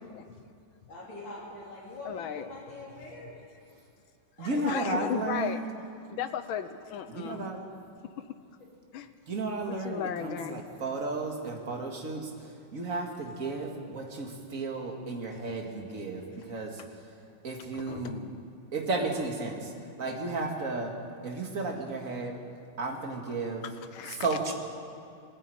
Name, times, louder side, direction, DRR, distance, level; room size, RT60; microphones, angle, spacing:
voice 1, 0.9-3.3 4.4-4.5, left 1 dB, 65° left, -6 dB, 4.3 m, -44 dB
voice 2, 2.1-2.5 4.5-5.7 6.1-7.5 8.9-9.1 9.6-10.6 15.3-15.4 17.7-18.2 18.9-19.2 23.6-24.3, left 9 dB, 85° left, 11 dB, 1.7 m, -35 dB
voice 3, 4.4-5.6 7.1-7.6 9.3-12.3 12.7-16.8 17.4-18.3 18.7-19.7 20.0-20.9 21.2-22.4 22.8-23.6 24.2-24.5, right 3 dB, 40° right, 1 dB, 2.4 m, -33 dB
21.0 x 14.0 x 9.2 m, 2.4 s
omnidirectional pair, 2.2 m